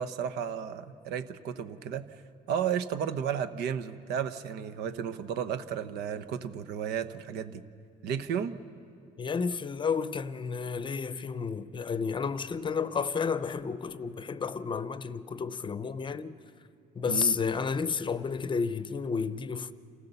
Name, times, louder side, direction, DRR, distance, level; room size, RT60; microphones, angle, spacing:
voice 1, 0.0-2.1 2.5-7.6 8.0-8.6 17.1-17.4, right 8 dB, 85° right, 0.9 m, -33 dB
voice 2, 9.2-16.4 17.0-19.7, left 5 dB, 30° left, 0.7 m, -31 dB
27.5 x 15.0 x 6.9 m
cardioid pair, 110°, 17 cm